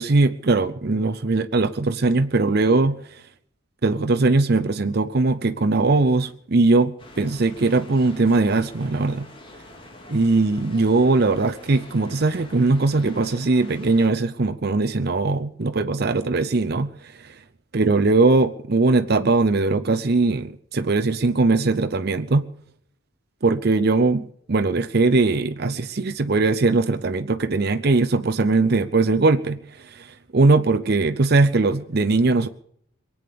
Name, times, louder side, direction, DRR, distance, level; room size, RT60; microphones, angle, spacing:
voice 1, 0.0-3.2 3.8-9.3 10.1-17.4 17.7-22.4 23.4-32.5, right 3 dB, 50° right, 0.6 m, -20 dB
sound 1, 7.0-14.1, left 1 dB, 25° left, 2.7 m, -45 dB
22.5 x 8.7 x 6.8 m
head